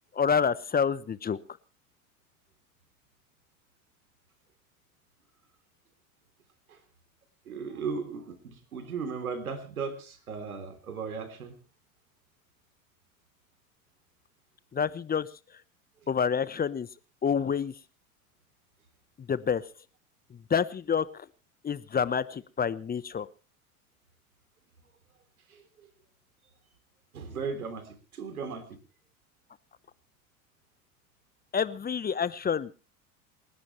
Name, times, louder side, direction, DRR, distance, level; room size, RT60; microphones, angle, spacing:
voice 1, 0.1-1.4 14.7-15.3 16.1-16.9 17.2-17.7 19.3-19.7 20.3-21.3 21.6-23.3 31.5-32.9, left 7 dB, 20° left, 17 dB, 0.9 m, -28 dB
voice 2, 7.5-11.6 25.5-25.9 27.1-28.8, right 5 dB, 90° right, 9 dB, 3.4 m, -37 dB
28.0 x 11.5 x 3.1 m, 0.34 s
hypercardioid pair, 80°, 42 cm